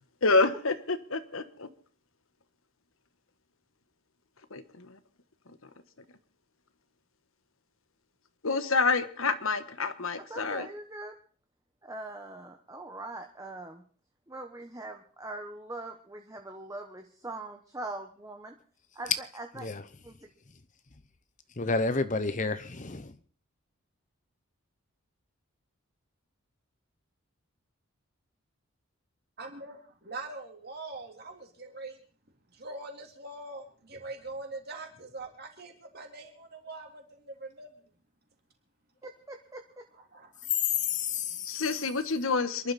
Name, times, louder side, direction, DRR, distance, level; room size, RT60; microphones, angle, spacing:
voice 1, 0.2-1.7 4.5-5.0 5.5-5.7 8.4-10.7 41.4-42.7, left 3 dB, 75° left, 1.3 m, -28 dB
voice 2, 10.3-11.1 11.8-13.8 14.3-18.5 18.9-19.8 20.0-20.3 39.0-39.6, right 2 dB, 15° right, 1.1 m, -42 dB
voice 3, 21.6-23.1 40.8-41.5, left 3 dB, 35° left, 0.8 m, -30 dB
voice 4, 29.4-32.0 32.5-37.7 39.9-40.5, right 2 dB, 45° right, 3.5 m, -43 dB
27.0 x 11.5 x 4.2 m
head